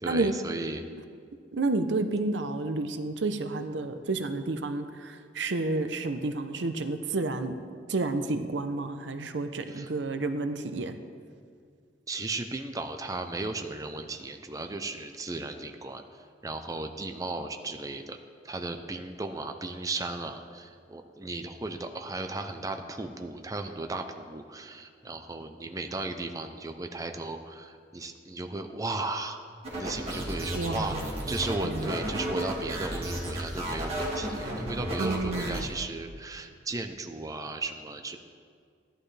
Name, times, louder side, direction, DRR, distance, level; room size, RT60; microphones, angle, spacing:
voice 1, 0.0-0.8 9.7-9.9 12.1-16.0 16.4-18.2 18.4-29.4 29.7-38.2, right 2 dB, 20° right, 6 dB, 0.5 m, -35 dB
voice 2, 1.5-7.5 7.9-11.0 30.5-31.1 31.6-32.0 35.0-35.7, right 2 dB, 80° right, 9 dB, 0.7 m, -30 dB
sound 1, 29.6-35.6, right 1 dB, 35° right, 2.1 m, -33 dB
15.5 x 11.0 x 3.3 m, 2.1 s
head